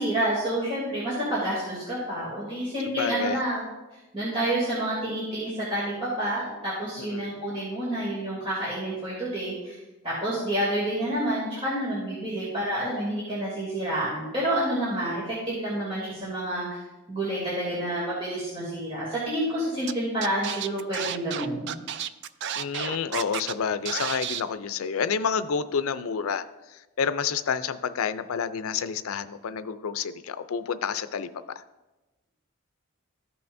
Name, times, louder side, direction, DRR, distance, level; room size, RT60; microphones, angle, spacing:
voice 1, 0.0-3.7 4.1-9.8 10.0-16.8 17.1-21.7, right 1 dB, 25° right, -9 dB, 2.6 m, -29 dB
voice 2, 3.0-3.4 7.0-7.3 22.6-26.5 27.0-31.3 31.6-31.7, left 6 dB, 90° left, 12 dB, 0.5 m, -29 dB
Scratching (performance technique), 19.9-20.0 20.2-23.5 23.9-24.4, right 9 dB, 55° right, 0.3 m, -31 dB
14.0 x 5.7 x 2.6 m, 1.1 s
head